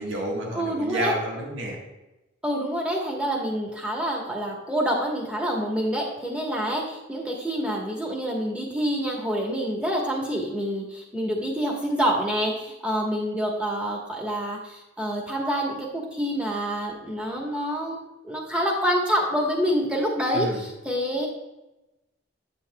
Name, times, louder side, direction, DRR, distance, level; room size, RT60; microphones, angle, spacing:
voice 1, 0.0-1.8 20.3-20.6, right 1 dB, 85° right, -2 dB, 1.6 m, -30 dB
voice 2, 0.5-1.1 2.4-18.0 18.2-21.3, equal, 5° right, -2 dB, 1.2 m, -27 dB
8.9 x 7.1 x 2.3 m, 1.0 s
head